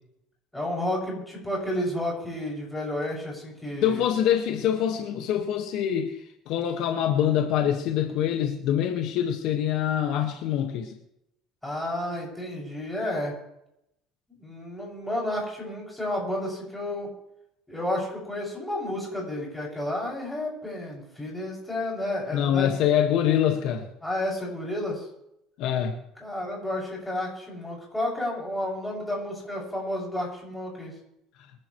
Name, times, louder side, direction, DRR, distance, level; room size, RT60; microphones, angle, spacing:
voice 1, 0.5-4.1 11.6-13.3 14.4-17.1 17.7-22.7 24.0-25.0 26.2-30.9, left 1 dB, 5° left, -3 dB, 6.9 m, -31 dB
voice 2, 3.8-6.1 6.5-10.9 22.3-23.9 25.6-26.0, left 10 dB, 65° left, 4 dB, 1.8 m, -25 dB
25.0 x 12.0 x 3.3 m, 0.81 s
cardioid pair, 135°, 0 cm